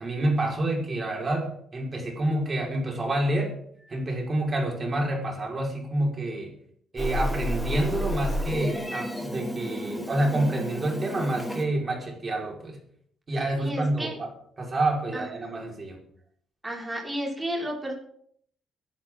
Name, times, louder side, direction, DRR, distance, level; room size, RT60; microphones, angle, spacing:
voice 1, 0.0-3.6 3.9-6.5 6.9-12.8 13.3-14.3 14.6-16.0, right 1 dB, 35° right, 0 dB, 5.3 m, -28 dB
Meow, 7.0-11.6, equal, ahead, 3.6 m, -31 dB
voice 2, 13.3-14.2 15.1-15.5 16.6-17.9, equal, 15° right, -2 dB, 5.8 m, -33 dB
21.5 x 12.0 x 3.9 m, 0.63 s
cardioid pair, 90°, 0 cm